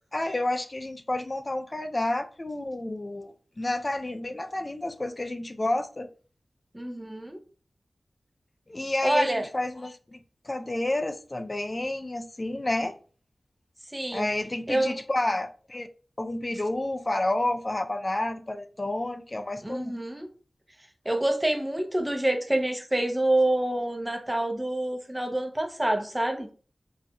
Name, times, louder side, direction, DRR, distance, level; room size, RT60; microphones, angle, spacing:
voice 1, 0.1-6.1 8.7-10.2 10.4-12.9 14.1-15.9 16.2-19.9, left 1 dB, 35° left, 0.4 m, -30 dB
voice 2, 6.7-7.4 9.0-9.4 13.9-14.3 14.7-15.0 19.6-20.3 21.0-26.5, right 1 dB, 15° right, 0.7 m, -27 dB
4.3 x 2.5 x 2.3 m
wide cardioid pair, 65°, 0 cm